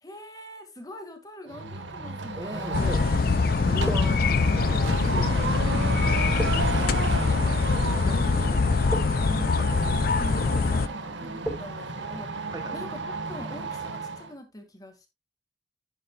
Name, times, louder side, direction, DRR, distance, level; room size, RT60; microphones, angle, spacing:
voice 1, 0.0-2.7 9.1-15.1, equal, 20° left, 2.1 m, -44 dB
sound 1, 1.5-14.3, right 3 dB, 85° right, 1.7 m, -33 dB
voice 2, 2.4-3.0 3.6-4.4 4.7-5.9 8.1-8.2 9.6-9.7 12.5-12.8, right 1 dB, 20° right, 1.1 m, -38 dB
sound 2, 2.7-10.9, left 4 dB, 50° left, 0.4 m, -23 dB
sound 3, 3.5-13.4, equal, ahead, 3.6 m, -42 dB
10.5 x 9.4 x 2.4 m
head